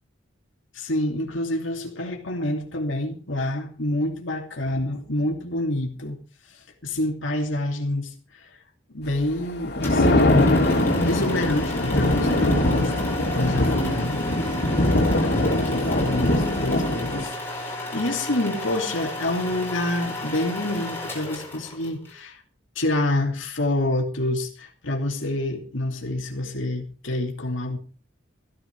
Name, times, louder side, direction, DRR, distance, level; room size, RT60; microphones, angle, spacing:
voice 1, 0.7-6.2 6.4-8.5 8.9-10.6 11.0-14.5 15.2-22.4 22.7-27.8, left 1 dB, 85° left, 2.8 m, -27 dB
Thunder, 9.5-17.2, left 1 dB, 55° left, 3.3 m, -22 dB
sound 1, 9.8-22.1, left 1 dB, 10° left, 5.1 m, -34 dB
15.5 x 11.5 x 4.8 m
head